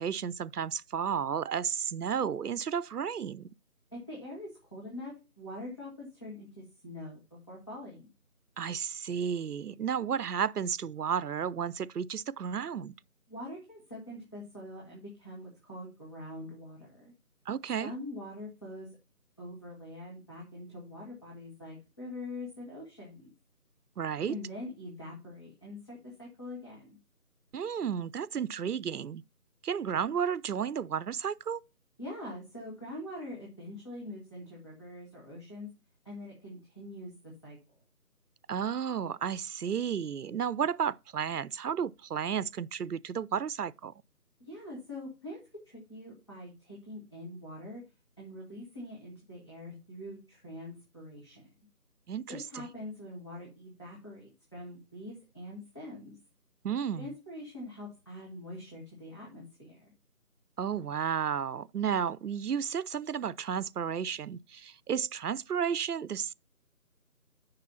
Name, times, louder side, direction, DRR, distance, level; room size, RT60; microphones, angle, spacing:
voice 1, 0.0-3.5 8.6-12.9 17.5-17.9 24.0-24.3 27.5-29.2 29.6-31.6 38.5-43.9 52.1-52.7 56.6-57.1 60.6-66.3, right 7 dB, 75° right, 0.6 m, -32 dB
voice 2, 3.9-8.1 13.3-17.1 17.8-18.9 19.4-23.3 24.3-27.0 32.0-35.7 36.0-37.6 44.4-45.4 45.6-47.8 48.2-51.5 52.3-56.1 57.0-59.9, left 1 dB, 20° left, 1.6 m, -44 dB
6.8 x 6.3 x 5.6 m
figure-of-eight pair, 175°, 46 cm